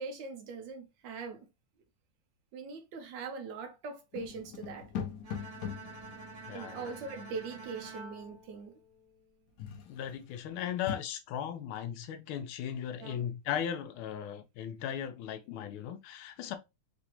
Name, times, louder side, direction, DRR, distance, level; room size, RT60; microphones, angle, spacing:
voice 1, 0.0-1.5 2.5-4.9 6.5-8.8 13.0-13.3, right 5 dB, 75° right, 1.2 m, -41 dB
sound 1, 4.1-7.9 9.6-10.1 10.5-11.0, left 7 dB, 70° left, 1.0 m, -42 dB
Bowed string instrument, 5.2-9.4, right 3 dB, 55° right, 1.7 m, -49 dB
voice 2, 6.5-7.2 9.8-16.6, left 9 dB, 90° left, 1.4 m, -37 dB
3.8 x 2.6 x 2.8 m
omnidirectional pair, 2.2 m